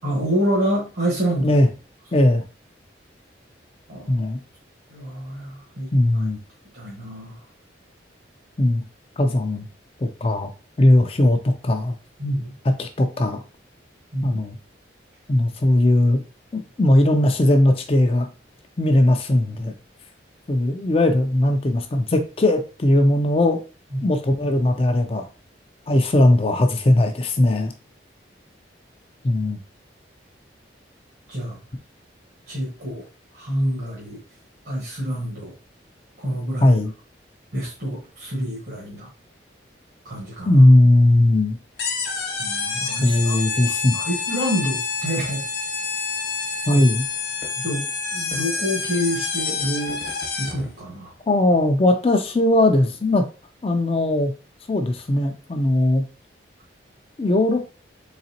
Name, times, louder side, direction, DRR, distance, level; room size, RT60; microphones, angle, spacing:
voice 1, 0.0-1.5 3.9-4.2 4.9-5.9 6.1-6.2 6.7-7.4 12.2-12.5 14.1-14.4 23.9-24.1 31.3-31.6 32.5-33.1 33.3-34.2 34.6-35.5 36.2-36.8 37.5-39.1 40.0-40.7 42.4-43.4 43.9-45.4 46.7-46.8 47.6-50.0 50.4-51.1, equal, 70° right, -4 dB, 1.4 m, -27 dB
voice 2, 2.1-2.4 4.1-4.4 5.9-6.4 8.6-8.8 9.2-9.7 10.0-10.5 10.8-11.9 12.8-13.4 14.2-14.6 15.3-16.2 16.5-18.3 18.8-19.7 20.5-23.6 24.0-25.3 25.9-27.7 29.2-29.6 36.6-36.9 40.4-41.6 43.0-44.0 46.7-47.1 51.3-53.3 53.6-54.3 54.7-56.0 57.2-57.6, left 1 dB, 30° left, 6 dB, 0.4 m, -18 dB
sound 1, 41.8-50.7, left 5 dB, 55° left, 1.0 m, -28 dB
4.0 x 3.3 x 2.8 m, 0.32 s
head